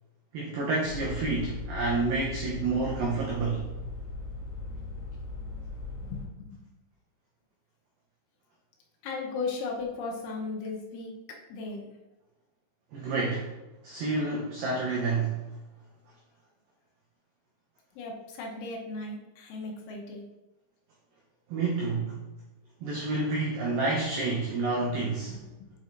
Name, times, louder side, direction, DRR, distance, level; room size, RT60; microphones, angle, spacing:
voice 1, 0.3-3.7 12.9-13.5 13.8-15.4 21.5-22.2 22.8-25.3, right 3 dB, 90° right, -3 dB, 2.0 m, -29 dB
sound 1, 0.8-6.3, left 3 dB, 55° left, 2.5 m, -38 dB
voice 2, 6.0-6.6 9.0-11.9 17.9-20.2 24.9-25.7, left 3 dB, 85° left, -1 dB, 3.4 m, -37 dB
8.7 x 5.5 x 2.6 m, 1.1 s
omnidirectional pair, 5.4 m